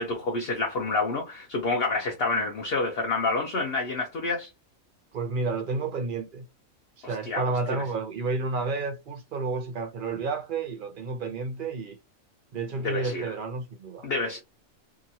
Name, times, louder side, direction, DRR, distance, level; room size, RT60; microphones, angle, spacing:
voice 1, 0.0-4.5 7.0-7.4 7.7-7.8 12.8-13.3 14.0-14.4, left 3 dB, 55° left, 0.8 m, -28 dB
voice 2, 5.1-6.5 7.0-12.0 12.5-14.1, right 3 dB, 60° right, 0.5 m, -31 dB
2.9 x 2.5 x 2.6 m
omnidirectional pair, 1.4 m